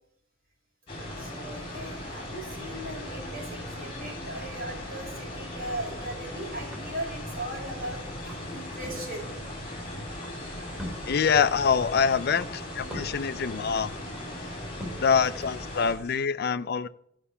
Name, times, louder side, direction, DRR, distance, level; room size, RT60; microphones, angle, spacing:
sound 1, 0.9-15.9, left 1 dB, 30° left, 3.1 m, -38 dB
voice 1, 1.2-9.3, right 1 dB, 50° right, -2 dB, 4.2 m, -38 dB
sound 2, 5.8-16.2, equal, 5° right, 3.1 m, -46 dB
voice 2, 11.1-13.9 15.0-16.9, left 6 dB, 55° left, 15 dB, 0.5 m, -25 dB
13.0 x 5.5 x 5.6 m, 0.70 s
head